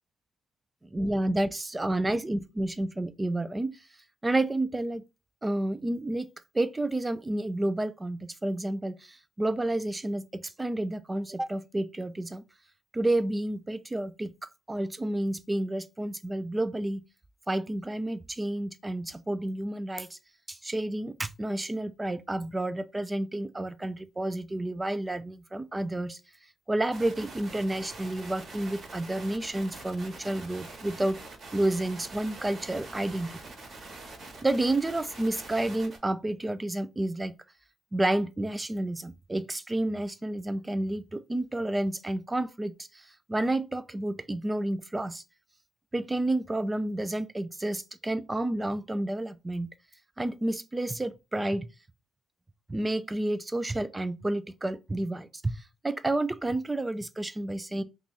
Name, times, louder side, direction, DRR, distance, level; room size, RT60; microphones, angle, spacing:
voice 1, 0.8-3.9 4.2-5.0 5.4-12.4 12.9-14.3 14.7-17.0 17.5-20.2 20.5-26.2 26.7-31.2 31.5-33.3 34.4-37.3 37.9-45.2 45.9-49.7 50.2-51.7 52.7-57.8, right 1 dB, 15° right, 0.3 m, -30 dB
sound 1, 26.9-36.0, right 2 dB, 45° right, 1.2 m, -45 dB
2.9 x 2.4 x 4.0 m
cardioid pair, 90°, 0 cm